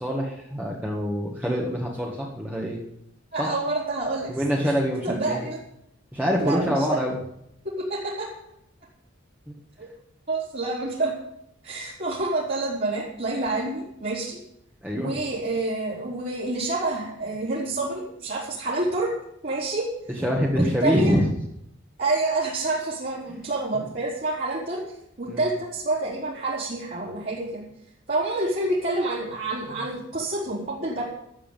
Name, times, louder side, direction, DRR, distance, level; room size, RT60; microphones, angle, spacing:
voice 1, 0.0-2.8 3.4-3.5 4.3-5.4 6.1-7.2 9.5-9.6 14.8-15.1 20.2-21.3 25.3-25.5, equal, 10° right, -3 dB, 1.7 m, -25 dB
voice 2, 3.3-4.3 5.0-5.6 6.4-6.9 7.6-8.3 9.8-9.9 10.3-11.1 11.6-14.4 14.9-19.1 19.4-19.9 20.5-21.2 22.0-24.8 25.2-27.6 28.1-31.0, right 2 dB, 50° right, -8 dB, 4.2 m, -28 dB
13.0 x 7.6 x 9.2 m, 0.76 s
head